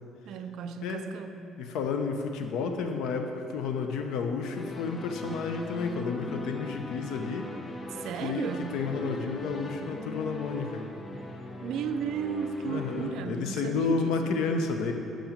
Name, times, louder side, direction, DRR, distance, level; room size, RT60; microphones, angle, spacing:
voice 1, 0.2-1.4 7.9-8.8 11.6-14.4, right 7 dB, 75° right, 9 dB, 0.4 m, -34 dB
voice 2, 1.6-7.5 8.2-10.8 12.7-14.9, left 5 dB, 80° left, 5 dB, 0.7 m, -31 dB
sound 1, 4.5-13.2, left 2 dB, 30° left, 0.8 m, -40 dB
7.0 x 6.1 x 5.0 m, 2.9 s
cardioid pair, 90°, 0 cm